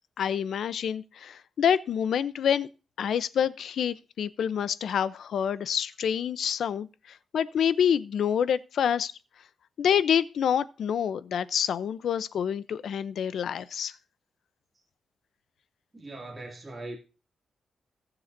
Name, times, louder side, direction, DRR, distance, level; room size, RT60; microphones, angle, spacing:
voice 1, 0.2-2.7 3.0-9.1 9.8-13.9, left 8 dB, 75° left, 0.6 m, -27 dB
voice 2, 15.9-17.0, right 2 dB, 20° right, 2.5 m, -40 dB
19.5 x 6.9 x 2.7 m
wide cardioid pair, 140°, 0 cm